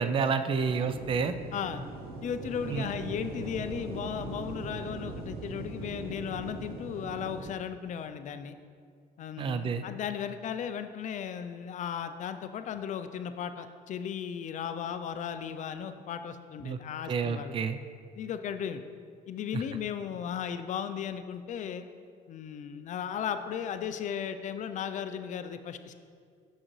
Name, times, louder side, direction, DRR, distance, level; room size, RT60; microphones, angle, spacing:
voice 1, 0.0-1.3 2.7-2.9 9.4-9.8 16.6-16.8 17.1-17.8 19.5-19.6, right 5 dB, 30° right, 10 dB, 0.3 m, -29 dB
sound 1, 0.6-7.5, right 3 dB, 65° right, 0.8 m, -40 dB
voice 2, 1.5-1.8 2.2-8.6 9.2-17.6 18.2-18.8 19.3-21.9 22.3-25.9, left 8 dB, 45° left, 9 dB, 0.4 m, -36 dB
6.4 x 6.2 x 3.1 m, 2.1 s
cardioid pair, 110°, 17 cm